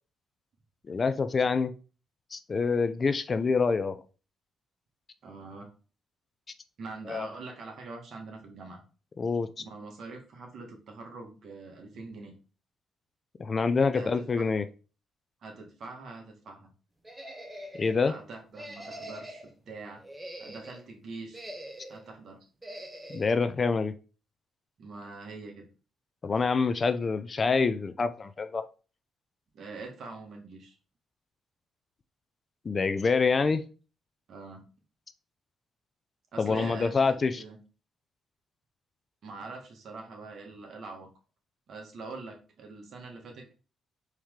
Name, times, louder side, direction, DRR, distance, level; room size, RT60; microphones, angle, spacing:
voice 1, 0.9-1.7 2.3-4.0 7.1-7.3 9.2-9.6 13.4-14.6 17.8-18.1 23.1-23.9 26.2-28.7 32.6-33.6 36.4-37.4, left 4 dB, 35° left, 0.4 m, -26 dB
voice 2, 5.2-5.7 6.8-8.8 9.6-12.3 13.9-14.5 15.4-16.7 18.0-20.0 20.4-21.5 21.9-22.4 24.8-25.7 29.5-30.8 34.3-34.7 36.3-37.6 39.2-41.1 41.7-43.5, right 3 dB, 60° right, 1.5 m, -44 dB
sound 1, 17.0-18.0 18.5-19.5 20.0-20.8 21.3-22.1 22.6-23.3, right 1 dB, 10° right, 0.9 m, -43 dB
4.3 x 3.2 x 3.6 m
cardioid pair, 90°, 0 cm